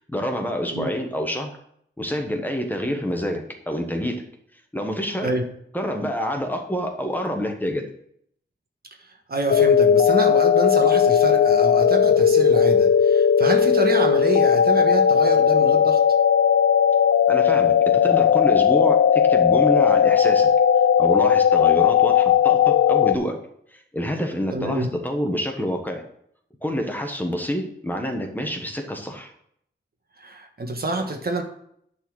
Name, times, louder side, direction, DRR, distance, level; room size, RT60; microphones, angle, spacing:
voice 1, 0.1-1.5 2.0-4.1 4.7-5.3 5.7-7.8 17.3-17.7 18.0-20.5 21.0-23.4 23.7-26.0 26.6-29.3, equal, 10° left, 3 dB, 1.3 m, -27 dB
voice 2, 9.3-16.0 24.5-24.9 30.2-31.4, right 2 dB, 50° right, 4 dB, 1.3 m, -27 dB
sound 1, 9.5-23.2, left 8 dB, 75° left, 0.4 m, -17 dB
10.5 x 4.3 x 6.3 m, 0.69 s
wide cardioid pair, 120°, 20 cm